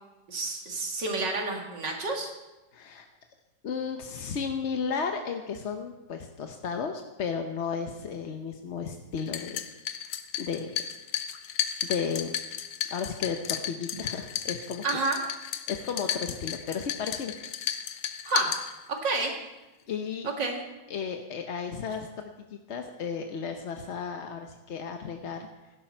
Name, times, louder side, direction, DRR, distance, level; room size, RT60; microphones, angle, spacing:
voice 1, 0.3-2.3 14.8-15.2 18.2-18.5 19.0-19.3 20.2-20.6, right 3 dB, 80° right, 1 dB, 2.8 m, -29 dB
voice 2, 2.7-3.1 3.6-9.6 10.4-10.8 11.8-12.3 12.9-15.0 15.7-17.3 19.9-20.3 20.9-25.5, left 6 dB, 50° left, 4 dB, 0.9 m, -34 dB
sound 1, 9.2-19.2, left 9 dB, 90° left, 1.5 m, -34 dB
16.5 x 11.5 x 4.5 m, 1.1 s
omnidirectional pair, 1.9 m